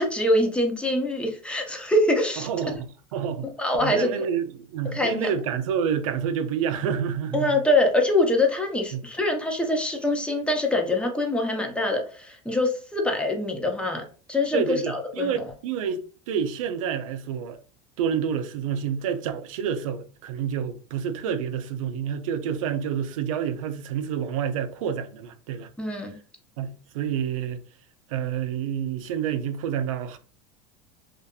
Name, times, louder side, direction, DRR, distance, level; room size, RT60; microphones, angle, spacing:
voice 1, 0.0-2.5 3.6-4.1 4.9-5.3 7.3-14.0 14.3-15.4 25.8-26.2, left 1 dB, 5° left, 0.6 m, -24 dB
voice 2, 2.4-3.5 3.8-7.6 8.9-9.0 14.5-17.6 18.0-25.7 26.6-27.6 28.1-30.2, right 8 dB, 85° right, 0.4 m, -28 dB
2.6 x 2.5 x 2.3 m
supercardioid pair, 110°, 17 cm